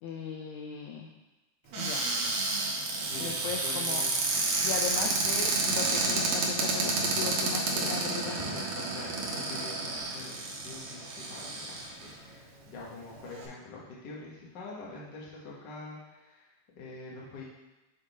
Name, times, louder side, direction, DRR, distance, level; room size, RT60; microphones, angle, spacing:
voice 1, 0.0-1.1 1.8-2.1 3.2-4.0 4.6-8.4, left 7 dB, 80° left, 1 dB, 1.6 m, -37 dB
Cupboard open or close, 1.7-12.1 12.8-12.9 13.1-13.4, right 3 dB, 65° right, 1.7 m, -30 dB
voice 2, 3.6-4.2 5.0-5.1 8.4-17.4, left 3 dB, 50° left, -5 dB, 1.3 m, -45 dB
6.5 x 3.8 x 4.7 m, 1.1 s
omnidirectional pair, 3.9 m